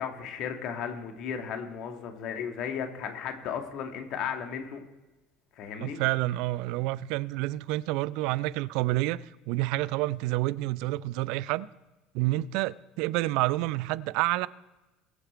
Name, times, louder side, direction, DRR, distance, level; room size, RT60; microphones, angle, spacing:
voice 1, 0.0-4.8 5.5-6.0, left 7 dB, 50° left, 2.2 m, -35 dB
voice 2, 5.8-11.7 12.1-14.5, right 18 dB, 60° right, 0.5 m, -28 dB
22.0 x 8.0 x 4.6 m
figure-of-eight pair, 65°, 0 cm